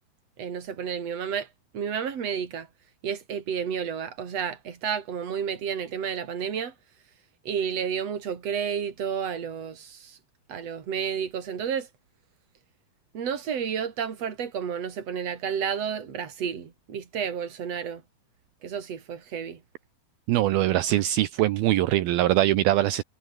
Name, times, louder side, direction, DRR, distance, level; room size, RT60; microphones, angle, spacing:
voice 1, 0.4-1.5 1.7-2.7 3.0-6.7 7.5-10.2 10.5-11.9 13.1-18.0 18.6-19.6, right 7 dB, 45° right, 3.8 m, -31 dB
voice 2, 20.3-23.0, right 14 dB, 75° right, 2.8 m, -22 dB
omnidirectional pair, 4.5 m